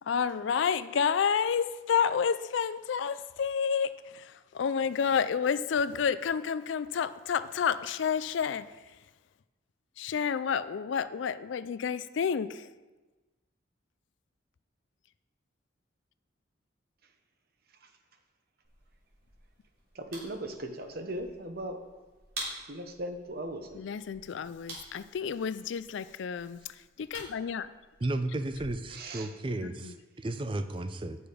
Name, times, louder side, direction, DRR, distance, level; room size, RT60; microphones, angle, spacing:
voice 1, 0.0-9.0 10.0-12.7 23.7-27.7 29.6-30.0, left 7 dB, 70° left, 15 dB, 0.4 m, -30 dB
sound 1, 18.6-28.7, right 2 dB, 85° right, 3.4 m, -48 dB
voice 2, 19.9-21.8 22.7-23.8 28.9-29.3, right 1 dB, 50° right, 6 dB, 0.9 m, -38 dB
voice 3, 28.0-31.2, right 2 dB, 25° right, 10 dB, 0.4 m, -33 dB
8.7 x 6.9 x 5.0 m, 1.2 s
head